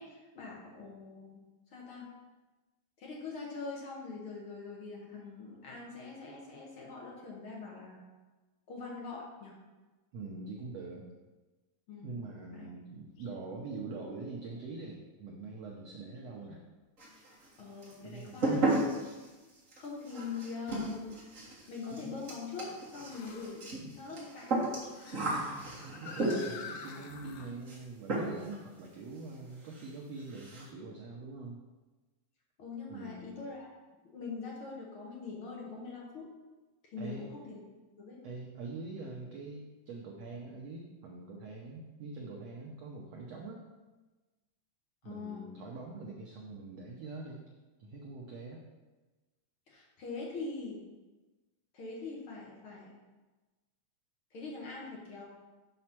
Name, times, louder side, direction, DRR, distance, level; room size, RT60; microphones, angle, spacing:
voice 1, 0.0-1.4 1.7-2.1 3.0-8.0 8.7-9.6 11.9-12.1 12.5-12.7 17.6-18.7 19.8-21.2 21.7-24.5 32.6-33.7 34.0-36.2 36.9-37.6 38.0-38.2 45.0-45.5 49.7-50.8 51.7-52.9 54.3-55.2, left 4 dB, 60° left, -3 dB, 1.4 m, -43 dB
voice 2, 10.1-11.1 12.0-16.6 18.0-18.4 25.8-31.6 32.9-33.4 37.0-37.3 38.2-43.6 45.0-47.4 47.8-48.6, right 3 dB, 85° right, -1 dB, 1.4 m, -44 dB
sound 1, 13.2-13.4 14.0-14.1 16.2-16.3 19.8-19.9 23.1-23.6 24.6-27.5, left 6 dB, 75° left, 2.0 m, -48 dB
sound 2, 17.0-17.5 17.8-26.7 27.7-27.8 28.1-28.6 28.8-28.9 29.3-29.4 29.7-29.9 30.2-30.7, right 2 dB, 35° right, 1.3 m, -34 dB
7.9 x 4.2 x 5.9 m, 1.2 s
omnidirectional pair, 4.0 m